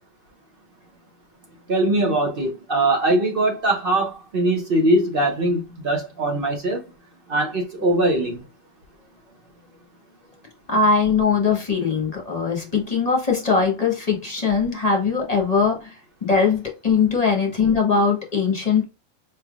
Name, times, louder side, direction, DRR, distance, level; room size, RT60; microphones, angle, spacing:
voice 1, 1.7-6.8 7.3-8.4, right 1 dB, 50° right, 0.8 m, -21 dB
voice 2, 10.7-15.9 16.2-18.8, left 5 dB, 30° left, 1.0 m, -21 dB
4.7 x 3.3 x 2.3 m
omnidirectional pair, 1.4 m